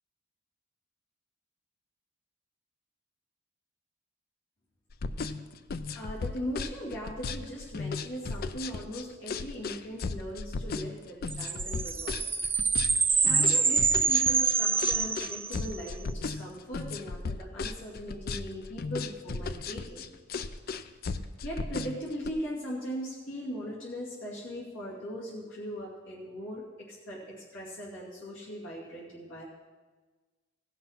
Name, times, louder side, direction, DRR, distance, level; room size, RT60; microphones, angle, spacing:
sound 1, 4.9-22.3, left 4 dB, 50° left, 0.5 m, -35 dB
voice 1, 5.9-12.2 13.2-20.1 21.4-29.4, equal, 75° left, -7 dB, 2.5 m, -39 dB
sound 2, 11.3-15.9, right 5 dB, 10° right, 0.3 m, -26 dB
16.5 x 5.9 x 5.8 m, 1.3 s
head